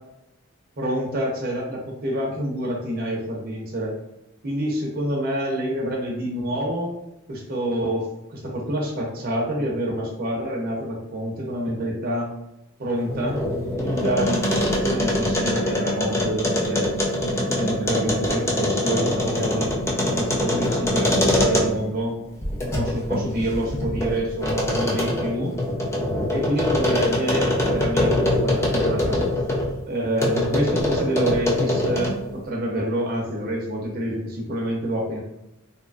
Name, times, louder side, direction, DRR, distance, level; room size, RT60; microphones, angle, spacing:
voice 1, 0.8-4.0 4.4-6.9 7.3-12.3 12.8-13.4 13.7-16.9 17.4-19.7 20.1-22.2 22.7-25.5 26.3-29.3 29.9-35.2, right 1 dB, 45° right, -2 dB, 0.5 m, -27 dB
sound 1, 13.0-21.9 22.4-29.7 30.2-32.3, left 1 dB, 15° left, 0.4 m, -23 dB
2.8 x 2.4 x 2.3 m, 0.91 s
head